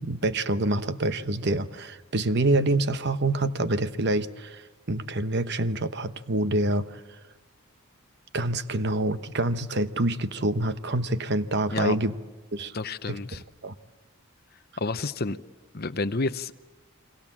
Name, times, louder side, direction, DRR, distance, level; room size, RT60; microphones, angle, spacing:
voice 1, 0.0-4.6 4.9-7.0 8.3-12.1 12.5-12.7 13.1-13.2 13.6-13.7, right 2 dB, 50° right, 11 dB, 1.0 m, -26 dB
voice 2, 12.7-13.4 14.8-15.4 15.7-16.5, left 3 dB, 45° left, 12 dB, 0.8 m, -29 dB
30.0 x 23.5 x 7.4 m, 1.2 s
head